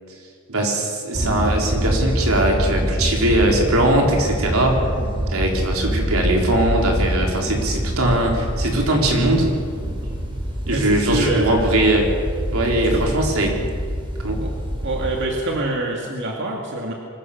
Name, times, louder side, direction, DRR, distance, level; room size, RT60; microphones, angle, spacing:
voice 1, 0.5-4.9 5.3-9.5 9.8-9.9 10.7-12.1 12.5-13.5 14.2-14.4, right 1 dB, 85° right, 0 dB, 4.1 m, -20 dB
sound 1, 1.1-15.2, equal, 25° right, 3.7 m, -25 dB
voice 2, 10.7-11.5 12.9-13.2 14.4-14.5 14.8-16.9, right 2 dB, 55° right, 0 dB, 2.4 m, -25 dB
24.5 x 16.0 x 7.3 m, 2.1 s
head